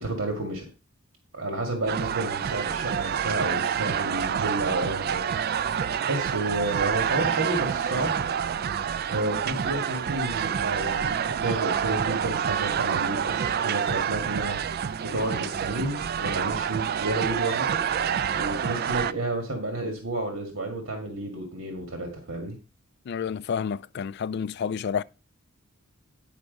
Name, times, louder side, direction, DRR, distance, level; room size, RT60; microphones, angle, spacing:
voice 1, 0.0-0.7 1.3-5.3 6.1-8.2 9.1-14.6 15.0-17.8 18.4-22.5, right 2 dB, 70° right, 1.9 m, -31 dB
sound 1, 1.9-19.1, right 8 dB, 50° right, 0.3 m, -28 dB
voice 2, 23.1-25.0, left 7 dB, 55° left, 0.3 m, -29 dB
10.5 x 4.8 x 5.2 m
head